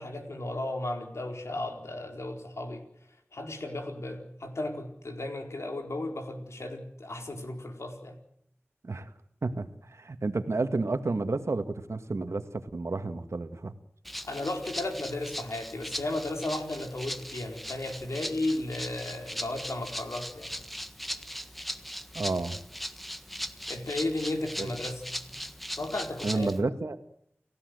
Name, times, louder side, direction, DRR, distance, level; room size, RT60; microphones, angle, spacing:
voice 1, 0.0-2.8 3.3-8.2 14.2-20.5 23.7-25.1 25.8-26.5, left 2 dB, 90° left, 4 dB, 4.4 m, -34 dB
voice 2, 9.4-13.7 22.1-22.6 24.6-24.7 26.2-27.0, right 3 dB, 85° right, 9 dB, 2.0 m, -31 dB
Rattle (instrument), 14.0-26.6, equal, ahead, 1.5 m, -39 dB
29.5 x 16.0 x 8.1 m, 0.72 s
wide cardioid pair, 45°, 5 cm